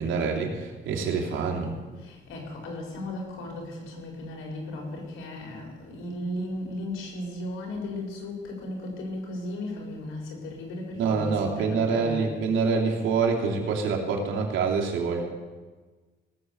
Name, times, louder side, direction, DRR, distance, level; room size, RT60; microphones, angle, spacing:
voice 1, 0.0-1.7 11.0-15.2, right 5 dB, 80° right, -1 dB, 2.9 m, -26 dB
voice 2, 2.0-12.3, left 1 dB, 85° left, 0 dB, 4.3 m, -36 dB
18.0 x 7.0 x 7.9 m, 1.3 s
cardioid pair, 90°, 20 cm